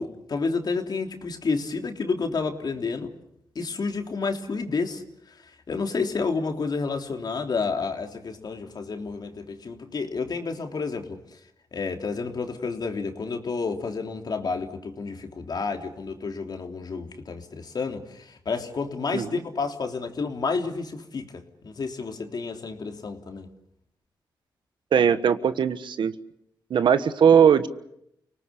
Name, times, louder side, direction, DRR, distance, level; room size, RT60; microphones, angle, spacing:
voice 1, 0.0-3.1 3.6-5.0 5.3-5.4 5.7-11.2 11.7-23.5, left 4 dB, 55° left, 4 dB, 3.4 m, -30 dB
voice 2, 24.9-26.1 26.7-27.7, right 7 dB, 75° right, 11 dB, 1.4 m, -19 dB
30.0 x 19.0 x 8.4 m, 0.77 s
cardioid pair, 65°, 8 cm